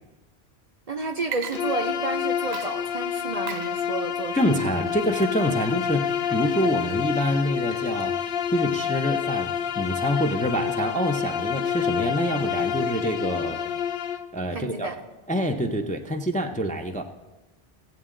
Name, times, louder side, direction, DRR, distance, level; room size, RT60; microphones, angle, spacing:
voice 1, 0.9-4.4 14.5-15.0, right 3 dB, 45° right, 5 dB, 0.6 m, -31 dB
Water / Liquid, 1.2-2.2 2.5-10.8, right 7 dB, 75° right, 0.9 m, -43 dB
Bowed string instrument, 1.5-14.3, left 8 dB, 65° left, 0.8 m, -28 dB
voice 2, 4.3-8.1 8.5-9.5 9.8-13.6 14.3-14.9 15.3-17.0, equal, 10° left, 4 dB, 0.5 m, -26 dB
17.0 x 8.0 x 3.8 m, 1.1 s
omnidirectional pair, 1.1 m